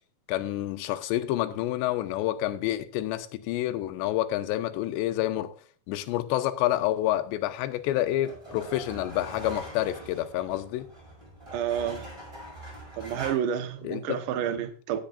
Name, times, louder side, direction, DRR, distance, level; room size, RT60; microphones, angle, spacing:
voice 1, 0.3-5.5 5.9-10.9 13.8-14.2, left 14 dB, 75° left, 2.9 m, -28 dB
sound 1, 7.5-13.4, equal, 5° right, 5.9 m, -43 dB
voice 2, 11.5-12.1 13.0-15.0, right 9 dB, 70° right, 2.1 m, -30 dB
18.0 x 8.0 x 2.6 m
omnidirectional pair, 5.5 m